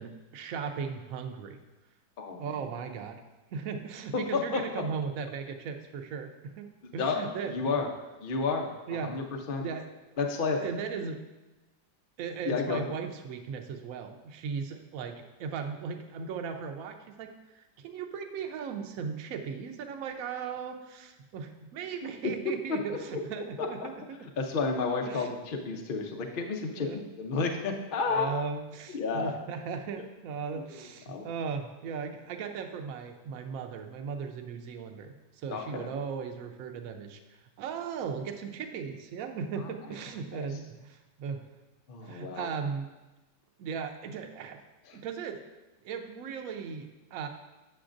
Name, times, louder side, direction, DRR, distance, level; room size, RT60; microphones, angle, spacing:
voice 1, 0.0-1.6 2.4-3.2 3.5-7.8 8.9-9.2 9.6-9.9 10.6-11.2 12.2-24.3 25.1-25.3 26.6-27.0 28.1-35.1 35.4-37.2 37.6-41.4 42.0-42.9 43.6-44.6 44.9-45.4 45.8-47.3, right 6 dB, 65° right, 5 dB, 0.9 m, -37 dB
voice 2, 2.2-2.6 4.1-4.6 7.0-7.9 8.2-9.6 10.2-10.6 12.5-12.8 22.7-22.8 23.6-23.7 24.4-26.9 27.2-28.4 28.9-29.3 30.5-30.8 31.1-31.3 35.5-35.9 40.3-40.4 41.9-42.5 44.9-45.0, left 4 dB, 90° left, 3 dB, 0.4 m, -31 dB
8.5 x 7.1 x 2.5 m, 1.1 s
omnidirectional pair, 1.9 m